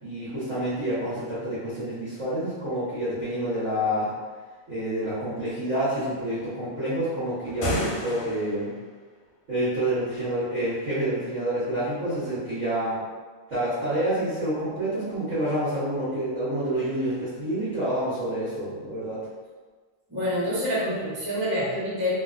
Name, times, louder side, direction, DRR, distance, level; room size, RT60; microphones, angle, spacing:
voice 1, 0.0-4.1 4.7-8.7 9.5-13.0 13.5-19.2, right 1 dB, 50° right, -13 dB, 1.0 m, -28 dB
sound 1, 7.4-8.7, left 1 dB, 75° left, 1.4 m, -31 dB
voice 2, 20.1-22.1, equal, 15° right, -11 dB, 0.8 m, -27 dB
3.4 x 2.4 x 2.4 m, 1.4 s
omnidirectional pair, 2.4 m